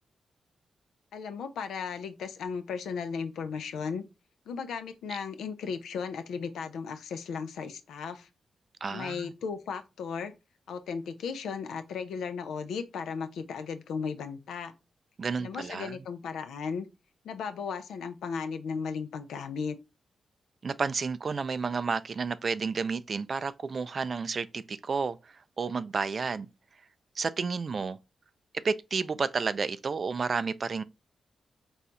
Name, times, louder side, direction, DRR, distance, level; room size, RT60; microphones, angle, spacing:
voice 1, 1.1-4.0 4.5-8.3 8.9-10.3 10.7-14.7 15.4-16.9 17.2-19.8, left 6 dB, 85° left, 0.5 m, -36 dB
voice 2, 8.8-9.3 15.2-15.9 20.6-25.2 25.6-26.5 27.2-28.0 28.6-30.8, right 5 dB, 55° right, 0.3 m, -31 dB
4.2 x 2.3 x 3.8 m
cardioid pair, 55°, 0 cm